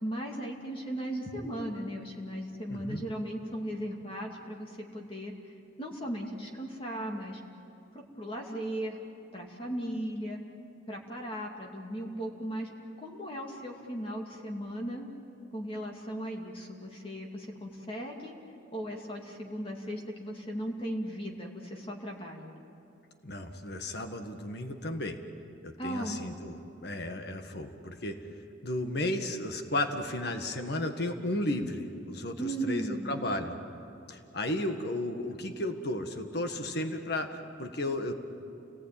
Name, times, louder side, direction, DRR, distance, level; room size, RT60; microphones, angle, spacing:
voice 1, 0.0-5.5 5.8-7.4 7.9-9.0 9.3-10.4 10.9-12.7 13.0-15.1 15.5-18.3 18.7-22.5 25.8-26.2 32.4-33.2, right 1 dB, 30° left, 0 dB, 2.5 m, -37 dB
voice 2, 2.7-3.0 23.2-25.2 25.6-28.2 28.6-33.6 34.1-38.1, left 1 dB, 55° left, 6 dB, 1.7 m, -34 dB
30.0 x 19.5 x 9.1 m, 2.6 s
head